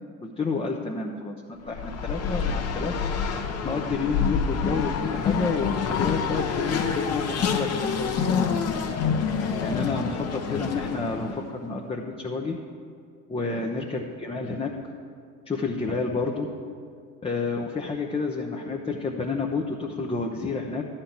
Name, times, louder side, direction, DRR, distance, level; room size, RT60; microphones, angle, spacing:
voice 1, 0.2-3.1 3.6-8.2 9.6-12.6 13.3-14.7 15.5-16.5 17.2-20.9, left 4 dB, 15° left, 0 dB, 0.7 m, -30 dB
Race car auto racing, 1.7-11.3, left 6 dB, 40° left, 1.0 m, -27 dB
sound 1, 2.2-11.5, left 6 dB, 60° left, 1.0 m, -41 dB
11.0 x 4.4 x 7.9 m, 2.2 s
hypercardioid pair, 75°, 39 cm